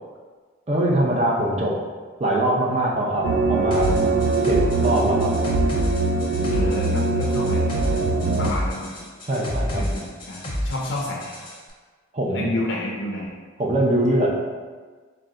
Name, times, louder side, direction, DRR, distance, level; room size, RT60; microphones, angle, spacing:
voice 1, 0.7-1.8 2.2-4.1 4.4-5.4 9.3-9.9 12.1-12.5 13.6-14.4, right 1 dB, 35° right, -3 dB, 0.6 m, -22 dB
sound 1, 3.2-8.5, right 3 dB, 85° right, 0.3 m, -22 dB
sound 2, 3.7-11.6, equal, 25° left, 0.7 m, -30 dB
voice 2, 6.5-7.9 8.4-9.1 9.8-11.3 12.3-13.3, left 1 dB, 70° left, -2 dB, 0.5 m, -30 dB
3.8 x 2.2 x 3.7 m, 1.4 s
head